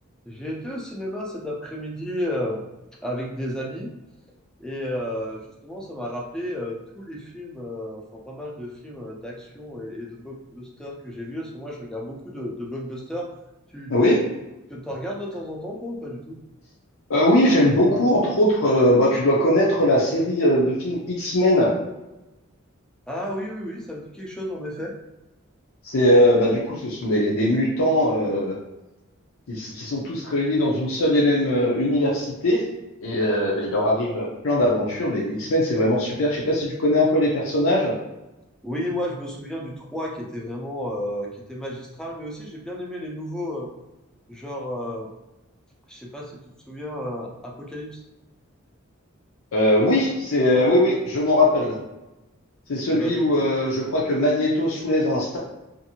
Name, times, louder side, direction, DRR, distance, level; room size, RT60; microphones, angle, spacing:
voice 1, 0.3-2.6 3.0-3.9 4.6-13.3 13.7-13.9 14.7-16.4 23.1-24.9 38.6-43.7 44.3-45.1 45.9-46.4 46.7-48.0 52.9-53.3, left 1 dB, 5° left, -2 dB, 0.5 m, -32 dB
voice 2, 13.9-14.2 17.1-21.8 25.8-28.6 29.5-32.6 33.0-37.9 49.5-51.8 52.7-55.4, left 1 dB, 75° left, -4 dB, 0.6 m, -20 dB
2.6 x 2.5 x 2.7 m, 0.99 s
head